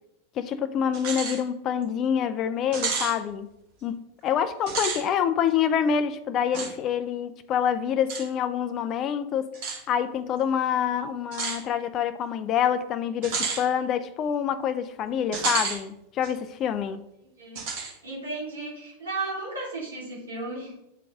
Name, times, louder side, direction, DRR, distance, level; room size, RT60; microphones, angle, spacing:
voice 1, 0.4-3.5 3.8-9.5 9.9-17.0, left 8 dB, 35° left, 0.5 m, -26 dB
sound 1, 0.9-1.4 1.8-1.9 2.7-3.1 4.6-5.0 6.5-6.7 8.1-8.2 9.5-9.8 11.3-11.6 13.2-13.6 15.3-15.8 16.2-16.3 17.6-17.9, right 5 dB, 50° right, 1.7 m, -30 dB
voice 2, 18.0-20.8, right 3 dB, 75° right, 2.5 m, -34 dB
8.3 x 3.9 x 3.7 m
figure-of-eight pair, 90°, 0 cm